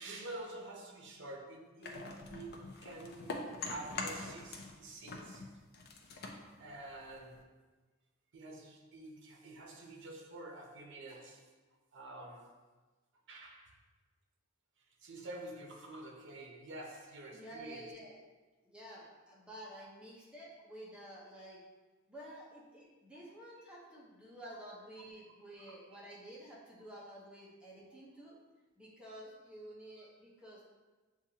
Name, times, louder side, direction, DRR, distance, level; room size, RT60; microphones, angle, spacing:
voice 1, 0.0-5.5 6.6-7.6 8.3-11.5 11.9-12.7 13.3-13.8 14.9-17.9 25.6-26.0 30.0-30.1, right 2 dB, 60° right, 1 dB, 0.7 m, -48 dB
sound 1, 1.8-4.8 5.0-7.4, left 3 dB, 50° left, 0.5 m, -44 dB
voice 2, 17.3-18.2 18.6-21.6 22.1-28.4 28.8-30.7, right 1 dB, 5° right, -6 dB, 0.7 m, -51 dB
7.0 x 2.5 x 2.8 m, 1.2 s
head